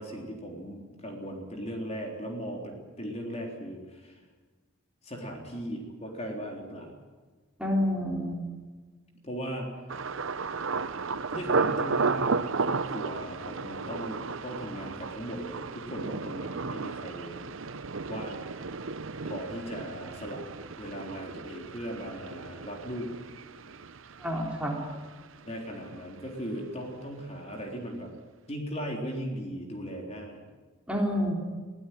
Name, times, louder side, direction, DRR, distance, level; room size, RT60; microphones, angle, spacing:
voice 1, 0.0-4.2 5.0-7.0 9.2-9.7 11.3-17.4 18.1-18.5 19.2-20.5 20.8-23.1 25.5-28.1 28.5-30.5, equal, 30° left, 1 dB, 3.7 m, -38 dB
voice 2, 7.6-8.4 24.2-24.8 30.9-31.3, equal, 5° right, -1 dB, 3.6 m, -28 dB
Thunder, 9.9-25.7 25.9-26.6 27.0-27.2, right 4 dB, 75° right, 0.8 m, -34 dB
22.5 x 16.0 x 9.3 m, 1.4 s
head